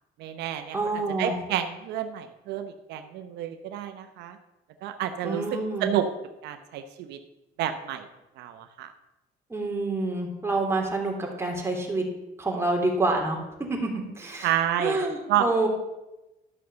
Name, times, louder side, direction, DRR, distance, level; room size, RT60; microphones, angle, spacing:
voice 1, 0.2-0.8 1.2-4.4 4.8-5.4 5.8-6.1 6.4-7.2 7.6-8.1 8.4-8.9 14.4-15.5, right 11 dB, 85° right, 8 dB, 0.8 m, -29 dB
voice 2, 0.7-1.4 5.2-5.9 9.5-12.1 12.4-14.5 14.8-15.7, right 2 dB, 15° right, 0 dB, 3.1 m, -27 dB
12.0 x 6.4 x 6.8 m, 0.98 s
cardioid pair, 110°, 17 cm